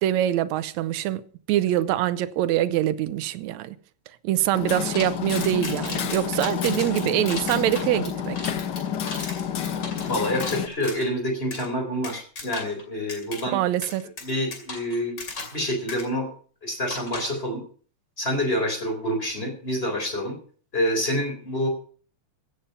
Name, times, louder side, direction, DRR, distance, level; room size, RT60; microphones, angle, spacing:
voice 1, 0.0-3.8 4.2-8.4 13.5-14.1, right 12 dB, 80° right, 2.0 m, -24 dB
Hammer, 4.5-10.7, left 8 dB, 85° left, 0.9 m, -29 dB
sound 1, 4.9-11.1 11.5-11.7 12.0-12.8 13.1-13.4 13.8-15.6 15.9-16.0 16.9-17.4, left 3 dB, 35° left, 3.0 m, -36 dB
voice 2, 9.7-13.6 14.2-15.2 15.5-16.3 16.6-17.6 18.2-20.4 20.7-21.7, equal, 20° left, 4.0 m, -27 dB
15.5 x 9.0 x 5.6 m
omnidirectional pair, 3.3 m